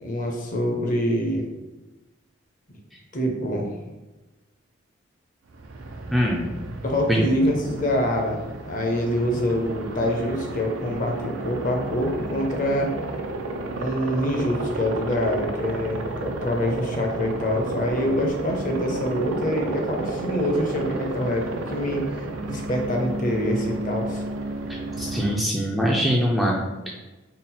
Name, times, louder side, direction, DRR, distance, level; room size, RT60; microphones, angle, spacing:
voice 1, 0.0-1.5 3.1-3.7 6.8-12.9 13.7-22.2 22.4-24.2, equal, 45° left, 1 dB, 0.6 m, -25 dB
Aircraft, 5.5-25.4, right 2 dB, 85° right, 0.4 m, -32 dB
voice 2, 6.1-6.4 7.1-7.2 25.0-26.9, equal, ahead, -4 dB, 0.4 m, -23 dB
3.9 x 2.0 x 4.1 m, 1.1 s
head